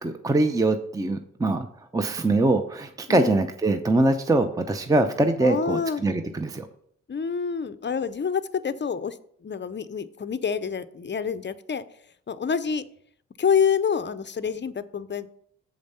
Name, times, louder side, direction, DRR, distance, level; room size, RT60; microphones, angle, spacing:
voice 1, 0.0-1.7 1.9-6.7, right 2 dB, 10° right, 8 dB, 0.6 m, -23 dB
voice 2, 3.1-3.4 5.4-6.0 7.1-9.2 9.4-11.8 12.3-12.8 13.4-15.3, left 6 dB, 35° left, 13 dB, 0.6 m, -27 dB
7.2 x 5.1 x 5.5 m, 0.67 s
cardioid pair, 70°, 32 cm